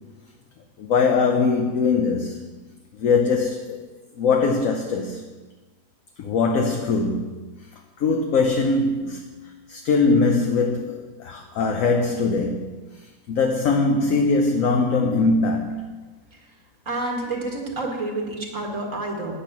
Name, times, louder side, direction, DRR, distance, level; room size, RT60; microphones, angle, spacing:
voice 1, 0.8-2.4 2.9-3.9 4.2-5.2 6.2-7.4 8.0-9.3 9.7-12.7 13.0-15.9, left 4 dB, 60° left, 1.1 m, -21 dB
voice 2, 16.9-19.3, right 2 dB, 50° right, 2.1 m, -29 dB
9.2 x 8.8 x 5.9 m
omnidirectional pair, 1.7 m